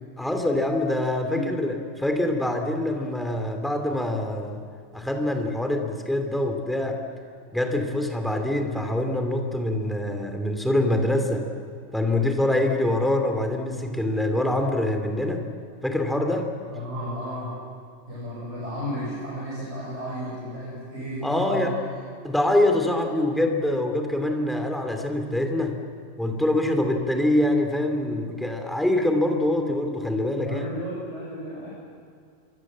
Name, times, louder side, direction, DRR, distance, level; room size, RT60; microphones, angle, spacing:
voice 1, 0.2-4.6 4.9-7.0 7.5-11.4 11.9-15.4 15.8-16.5 21.2-21.7 22.2-25.8 26.2-30.6, left 1 dB, ahead, 4 dB, 2.8 m, -24 dB
voice 2, 16.7-17.5 18.1-21.7 30.4-31.7, equal, 60° right, -6 dB, 6.2 m, -33 dB
27.0 x 24.0 x 7.6 m, 2.3 s
omnidirectional pair, 1.3 m